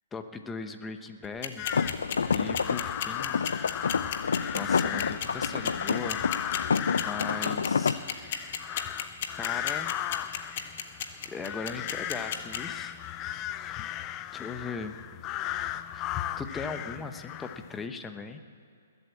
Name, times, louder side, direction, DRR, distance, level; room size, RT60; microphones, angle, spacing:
voice 1, 0.1-1.7 2.3-3.5 3.8-4.0 4.5-6.2 7.0-8.6 9.4-10.0 11.2-13.0 13.6-13.9 14.3-14.9 15.9-18.4, left 4 dB, 15° left, 8 dB, 1.0 m, -39 dB
sound 1, 1.2-12.6, left 9 dB, 55° left, 1.4 m, -32 dB
sound 2, 1.6-17.8, left 13 dB, 30° left, 0.5 m, -36 dB
sound 3, 1.7-8.0, left 5 dB, 80° left, 0.6 m, -29 dB
21.0 x 8.1 x 8.5 m, 2.5 s
hypercardioid pair, 135°, 0 cm